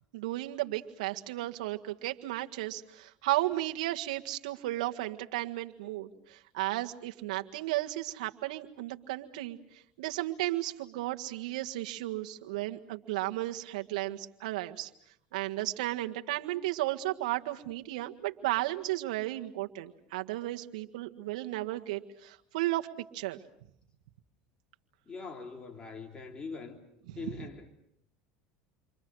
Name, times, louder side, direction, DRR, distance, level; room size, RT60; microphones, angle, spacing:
voice 1, 0.1-9.6 10.0-14.9 15.3-22.9 23.1-23.4, right 17 dB, 85° right, 1.7 m, -34 dB
voice 2, 25.1-26.8 27.1-27.7, left 4 dB, 25° left, 3.3 m, -42 dB
29.5 x 24.5 x 6.4 m
supercardioid pair, 110°, 4 cm